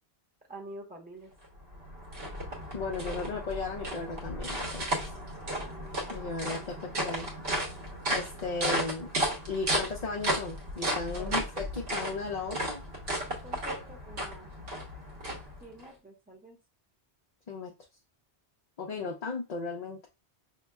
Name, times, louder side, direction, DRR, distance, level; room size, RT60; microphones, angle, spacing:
voice 1, 0.5-1.3 11.2-11.4 13.3-14.5 15.6-16.6, right 1 dB, 10° right, 0 dB, 0.9 m, -47 dB
sound 1, 1.4-15.9, right 1 dB, 60° right, 1.3 m, -34 dB
voice 2, 2.7-5.0 6.1-7.3 8.1-9.1 9.5-12.8 17.5-17.7 18.8-20.0, left 4 dB, 45° left, 0 dB, 0.6 m, -35 dB
5.6 x 2.8 x 2.2 m, 0.27 s
omnidirectional pair, 1.1 m